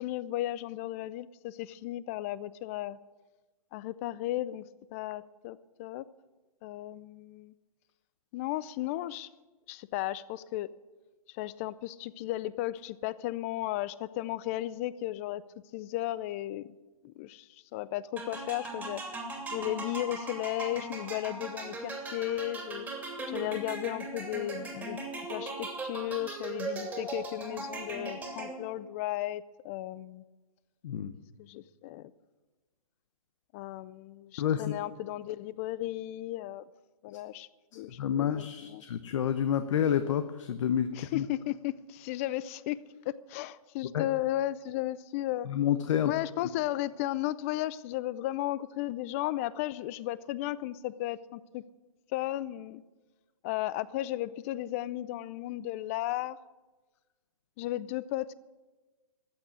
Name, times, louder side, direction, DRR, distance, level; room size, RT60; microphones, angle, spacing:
voice 1, 0.0-3.0 3.7-6.0 6.6-7.5 8.3-9.3 9.7-10.7 11.3-15.4 15.7-16.8 17.0-19.0 19.5-22.9 23.3-25.0 25.3-30.2 31.4-32.1 33.5-36.6 37.0-38.8 40.9-42.8 43.0-45.5 46.0-51.6 52.1-52.8 53.4-56.4 57.6-58.3, left 15 dB, 25° left, 19 dB, 0.4 m, -35 dB
sound 1, 18.2-28.8, right 2 dB, 10° right, 2.6 m, -39 dB
voice 2, 38.0-41.2 43.9-44.1 45.5-46.1, left 9 dB, 55° left, 10 dB, 0.9 m, -29 dB
14.5 x 9.0 x 9.7 m, 1.2 s
hypercardioid pair, 145°, 19 cm